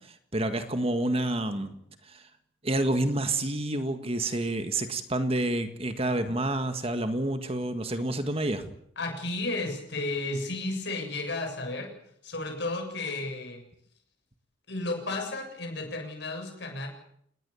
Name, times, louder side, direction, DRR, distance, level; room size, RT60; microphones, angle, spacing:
voice 1, 0.3-1.8 2.1-2.2 2.6-8.7, right 1 dB, 30° right, 9 dB, 1.7 m, -28 dB
voice 2, 9.0-11.9 12.2-13.6 14.7-16.9, left 2 dB, 60° left, 4 dB, 7.3 m, -33 dB
27.5 x 20.0 x 7.1 m, 0.71 s
head